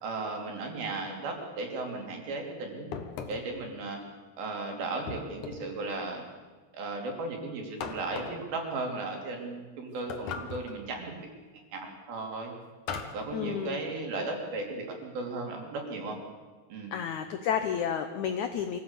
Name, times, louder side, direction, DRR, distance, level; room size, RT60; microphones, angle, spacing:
voice 1, 0.0-3.0 3.3-4.0 4.4-6.2 6.7-11.1 11.5-12.6 13.1-16.2 16.7-16.9, right 3 dB, 65° right, 2 dB, 4.8 m, -36 dB
sound 1, 2.9-3.6 5.1-5.8 7.8-8.5 10.1-10.8 12.9-13.3, left 6 dB, 60° left, 2.5 m, -38 dB
voice 2, 13.3-13.8 16.9-18.8, left 8 dB, 80° left, 8 dB, 1.7 m, -31 dB
24.5 x 15.0 x 8.2 m, 1.4 s
omnidirectional pair, 4.7 m